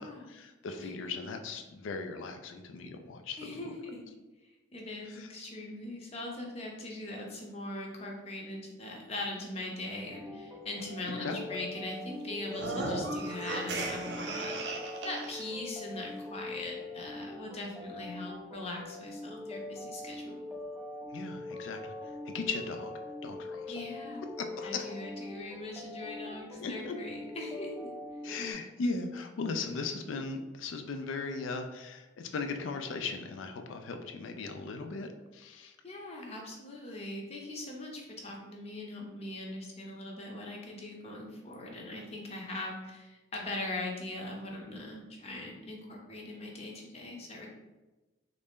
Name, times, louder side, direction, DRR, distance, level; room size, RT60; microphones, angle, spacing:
voice 1, 0.0-3.6 5.1-5.3 11.2-11.4 21.1-21.9 22.3-22.9 23.2-23.8 24.6-24.9 26.6-26.9 28.2-35.7, left 4 dB, 85° left, 6 dB, 0.3 m, -38 dB
voice 2, 3.4-4.1 4.4-20.4 23.7-24.2 24.6-27.9 35.8-47.5, left 2 dB, 30° left, 0 dB, 0.6 m, -41 dB
sound 1, 10.1-28.5, left 2 dB, 5° right, 0.3 m, -43 dB
sound 2, 12.5-15.5, right 2 dB, 60° right, 0.5 m, -36 dB
3.2 x 2.6 x 3.5 m, 1.1 s
head